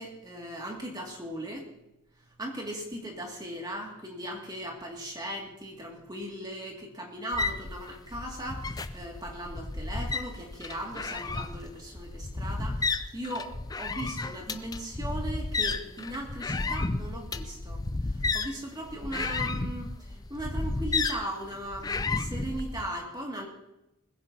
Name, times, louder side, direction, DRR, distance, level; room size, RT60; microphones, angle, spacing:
voice 1, 0.0-1.7 2.4-23.5, right 1 dB, 20° right, 0 dB, 2.3 m, -38 dB
sound 1, 7.3-22.9, left 3 dB, 15° left, 0.4 m, -32 dB
20.5 x 15.5 x 2.8 m, 0.91 s
head